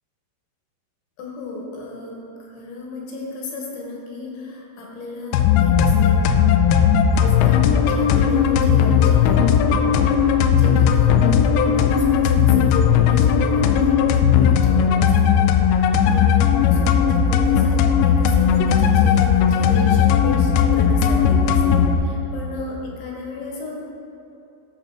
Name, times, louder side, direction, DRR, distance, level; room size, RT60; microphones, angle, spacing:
voice 1, 1.2-6.2 7.1-23.8, left 3 dB, 75° left, -2 dB, 3.2 m, -34 dB
sound 1, 5.3-22.0, left 7 dB, 90° left, 2.6 m, -17 dB
12.5 x 6.7 x 4.6 m, 2.8 s
omnidirectional pair, 5.9 m